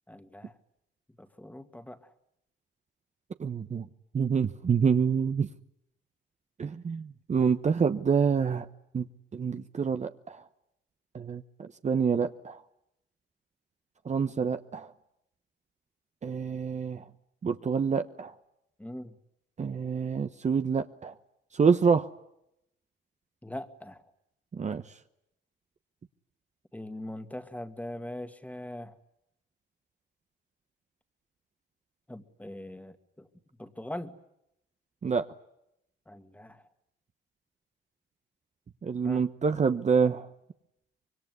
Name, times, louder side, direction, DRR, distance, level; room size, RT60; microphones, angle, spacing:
voice 1, 0.1-0.5 1.2-2.1 18.8-19.1 23.4-24.0 26.7-29.0 32.1-33.3 33.6-34.1 36.1-36.6 39.0-39.2, left 1 dB, 5° left, 9 dB, 1.9 m, -41 dB
voice 2, 3.4-3.9 4.1-5.5 6.6-8.7 8.9-9.0 9.3-10.4 11.1-12.6 14.0-14.9 16.2-17.0 17.4-18.3 19.6-21.1 21.5-22.1 24.5-24.8 35.0-35.3 38.8-40.3, right 6 dB, 35° right, 8 dB, 1.0 m, -27 dB
25.5 x 22.5 x 9.5 m, 0.82 s
cardioid pair, 90°, 20 cm